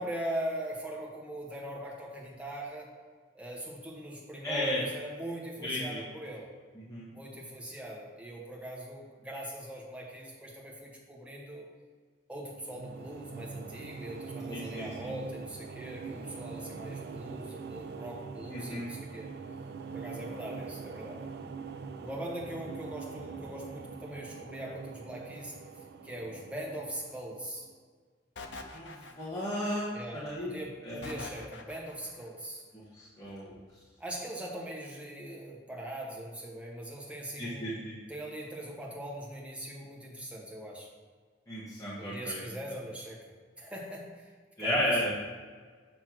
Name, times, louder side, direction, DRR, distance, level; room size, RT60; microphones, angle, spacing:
voice 1, 0.0-2.9 3.3-6.5 7.1-11.7 12.3-19.3 19.9-21.2 22.0-27.6 29.9-32.6 34.0-37.8 38.1-40.9 42.0-43.3 43.6-44.3 44.6-45.0, right 1 dB, 5° right, -3 dB, 1.3 m, -41 dB
voice 2, 4.4-4.8 5.6-6.0 6.9-7.0 14.5-15.1 18.5-18.9 28.7-30.5 30.8-31.2 32.9-33.5 37.4-38.0 41.5-42.4 44.6-45.1, equal, 20° left, -10 dB, 1.4 m, -34 dB
sound 1, 12.4-27.7, right 5 dB, 60° right, 0.4 m, -43 dB
sound 2, 28.4-29.6 31.0-32.1, left 3 dB, 80° left, 0.7 m, -44 dB
7.6 x 3.2 x 6.1 m, 1.5 s
head